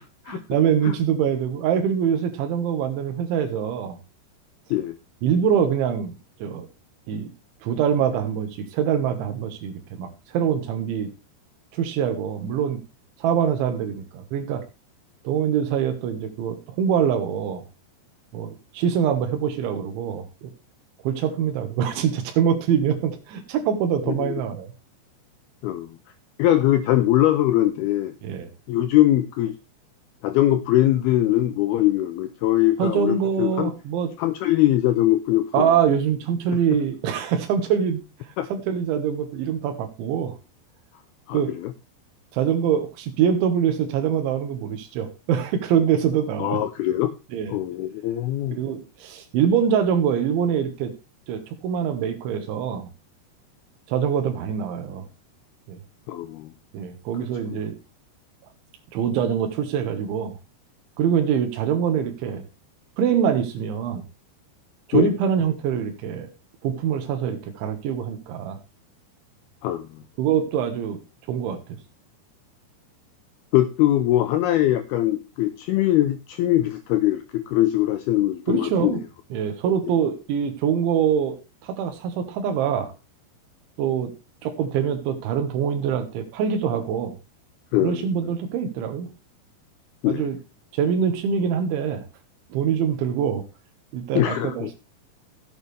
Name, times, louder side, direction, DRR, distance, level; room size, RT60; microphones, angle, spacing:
voice 1, 0.3-4.0 5.2-6.1 6.4-6.7 7.1-7.3 7.6-11.1 11.7-12.8 13.2-14.6 15.3-17.6 18.3-20.5 21.0-24.7 28.2-28.5 32.8-34.1 35.5-38.0 38.5-40.4 41.3-41.5 42.3-46.6 47.3-47.6 48.5-50.9 51.3-52.9 53.9-55.1 55.7-55.8 56.7-57.7 58.9-60.4 61.0-62.4 63.0-64.0 64.9-66.3 66.6-68.6 70.2-71.0 71.3-71.6 78.5-79.0 79.3-81.4 81.6-82.9 83.8-84.1 84.4-87.2 87.8-89.1 90.1-90.4 90.7-92.0 92.5-93.4 93.9-94.7, right 8 dB, 90° right, 5 dB, 3.8 m, -24 dB
voice 2, 25.6-26.0 26.4-28.1 28.7-29.6 30.2-33.7 34.2-35.7 38.4-38.5 41.3-41.7 46.4-47.1 47.5-48.6 56.1-56.5 57.5-57.6 64.9-65.1 69.6-69.9 73.5-79.0 87.7-88.1 90.0-90.3 94.1-94.7, left 14 dB, 85° left, 10 dB, 2.3 m, -21 dB
14.5 x 8.7 x 3.3 m, 0.28 s
omnidirectional pair, 5.2 m